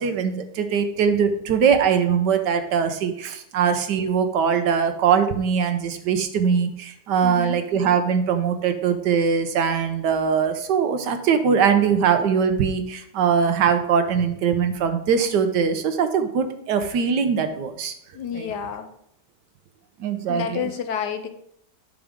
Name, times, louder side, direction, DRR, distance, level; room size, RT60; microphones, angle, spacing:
voice 1, 0.0-17.9 18.3-18.5 20.0-20.7, right 6 dB, 80° right, 8 dB, 1.4 m, -21 dB
voice 2, 7.2-7.6 18.1-18.9 20.3-21.3, left 7 dB, 75° left, 7 dB, 1.4 m, -29 dB
8.6 x 6.3 x 3.6 m, 0.70 s
omnidirectional pair, 1.9 m